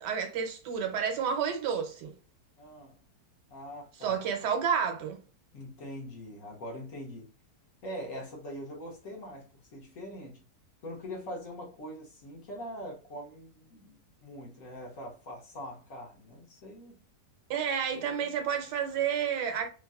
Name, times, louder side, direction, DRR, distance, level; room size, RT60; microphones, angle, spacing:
voice 1, 0.0-2.1 4.0-5.2 17.5-19.7, right 7 dB, 75° right, 1.3 m, -30 dB
voice 2, 2.6-3.0 3.5-4.2 5.5-7.3 7.8-10.4 10.8-16.9 17.9-18.3, equal, 60° left, 1.0 m, -43 dB
3.1 x 2.6 x 2.3 m
omnidirectional pair, 1.9 m